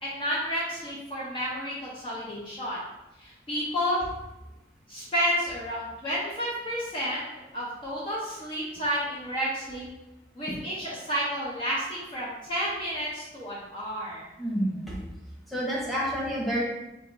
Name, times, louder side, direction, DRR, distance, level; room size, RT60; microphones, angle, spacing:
voice 1, 0.0-2.8 3.2-4.0 4.9-7.3 7.5-9.9 10.3-14.3, equal, 30° left, -6 dB, 0.7 m, -31 dB
voice 2, 14.4-15.0 15.5-16.6, equal, ahead, -6 dB, 1.0 m, -29 dB
3.8 x 2.9 x 3.9 m, 0.97 s
head